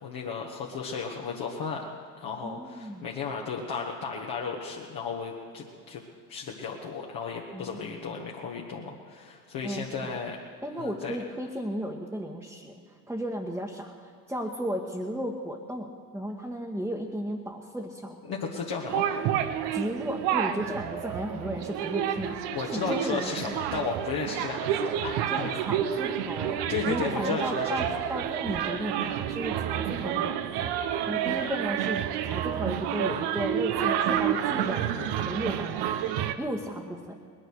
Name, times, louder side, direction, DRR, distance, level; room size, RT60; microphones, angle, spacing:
voice 1, 0.0-1.8 2.2-6.0 6.3-10.4 10.8-11.2 18.3-19.2 22.5-25.6 26.7-28.0 35.0-35.3, left 5 dB, 50° left, -2 dB, 1.8 m, -34 dB
voice 2, 2.4-3.1 7.5-8.0 9.6-10.1 10.6-12.8 13.1-18.2 19.7-23.6 25.3-30.7 31.1-35.8 36.4-37.2, equal, 5° right, -1 dB, 1.5 m, -34 dB
sound 1, 18.9-36.3, right 10 dB, 55° right, 1.0 m, -29 dB
20.0 x 10.5 x 6.5 m, 2.2 s
hypercardioid pair, 75°, 47 cm